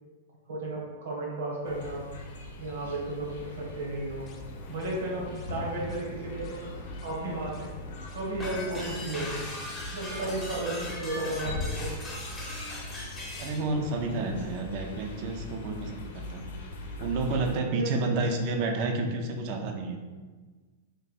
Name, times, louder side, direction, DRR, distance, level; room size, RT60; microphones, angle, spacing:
voice 1, 0.5-2.1 2.6-4.3 4.7-6.7 7.0-7.7 8.1-9.4 9.9-12.1 17.7-17.9, right 2 dB, 75° right, -3 dB, 1.3 m, -34 dB
sound 1, 1.6-17.6, left 2 dB, 75° left, 0.7 m, -41 dB
sound 2, 4.3-8.7, left 2 dB, 30° left, 0.4 m, -49 dB
sound 3, 8.4-13.6, left 1 dB, 10° left, 0.8 m, -39 dB
voice 2, 13.4-16.4 17.0-20.0, right 3 dB, 45° right, 4 dB, 0.5 m, -30 dB
3.3 x 2.6 x 4.1 m, 1.4 s
hypercardioid pair, 135°, 0 cm